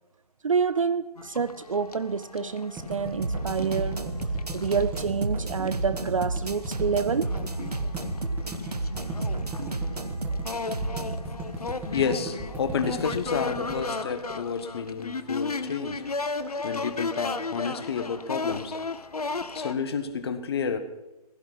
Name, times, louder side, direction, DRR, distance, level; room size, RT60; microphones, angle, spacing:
voice 1, 0.4-4.2 4.5-7.3, right 5 dB, 55° right, 0.6 m, -28 dB
sound 1, 1.2-5.1 5.7-5.8 6.0-19.7, left 3 dB, 70° left, 1.1 m, -35 dB
sound 2, 2.8-14.9, right 2 dB, 10° right, 2.2 m, -37 dB
sound 3, 3.2-11.2, right 2 dB, 80° right, 1.2 m, -32 dB
voice 2, 11.9-16.0 16.6-18.8 19.5-20.8, left 6 dB, 40° left, 1.5 m, -30 dB
16.5 x 14.5 x 5.9 m
figure-of-eight pair, 140°, 20 cm